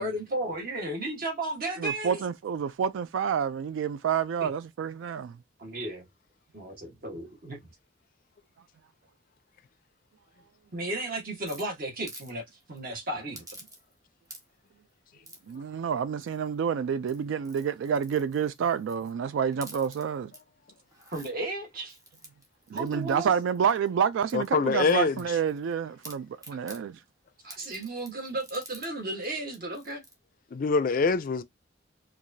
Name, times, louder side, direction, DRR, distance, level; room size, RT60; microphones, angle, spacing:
voice 1, 0.0-2.2 4.4-4.5 5.6-6.1 6.5-7.6 10.7-13.5 21.1-22.0 22.7-23.3 27.4-30.0, right 1 dB, 50° right, 1.2 m, -34 dB
voice 2, 1.8-5.4 15.5-20.3 22.7-27.0, right 7 dB, 70° right, 0.3 m, -28 dB
sound 1, 11.5-12.3 12.6-12.8 13.3-14.0 14.2-14.7 15.2-15.6 16.2-16.6 17.0-19.1 19.5-20.4 20.8-21.3 21.9-23.9 24.3-25.7 26.0-26.8 27.5-28.9 29.2-29.3 29.5-30.2, right 1 dB, 20° right, 1.0 m, -49 dB
voice 3, 24.3-25.2 30.5-31.4, left 4 dB, 45° left, 0.4 m, -24 dB
4.6 x 2.4 x 2.6 m
head